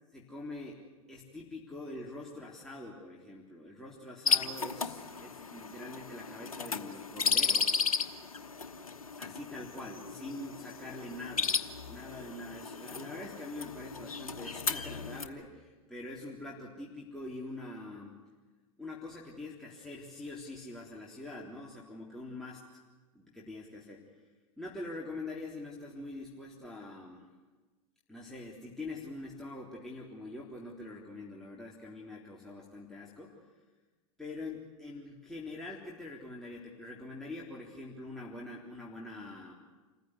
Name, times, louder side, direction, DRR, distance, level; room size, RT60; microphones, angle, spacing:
voice 1, 0.1-7.7 9.2-11.6 11.9-18.2 18.8-22.6 23.1-24.0 24.6-27.3 28.1-33.4 34.2-39.5, left 2 dB, ahead, -5 dB, 3.6 m, -44 dB
sound 1, 4.3-15.3, left 5 dB, 85° left, 1.2 m, -34 dB
27.5 x 15.5 x 9.9 m, 1.3 s
hypercardioid pair, 90°, 18 cm